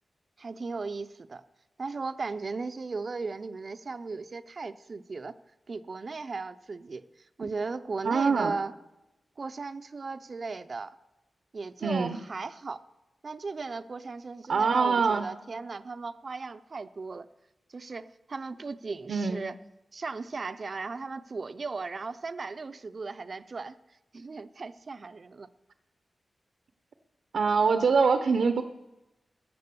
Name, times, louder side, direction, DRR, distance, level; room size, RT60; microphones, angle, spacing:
voice 1, 0.4-1.4 1.8-5.4 5.7-7.0 7.4-8.7 9.4-10.9 11.5-12.8 13.2-17.3 17.7-19.5 19.9-23.8 24.1-25.5, right 4 dB, 45° right, 12 dB, 0.5 m, -36 dB
voice 2, 8.0-8.5 11.8-12.2 14.5-15.3 19.1-19.4 27.3-28.6, right 5 dB, 85° right, 8 dB, 0.8 m, -24 dB
14.5 x 9.0 x 6.8 m, 0.98 s
wide cardioid pair, 125°, 0 cm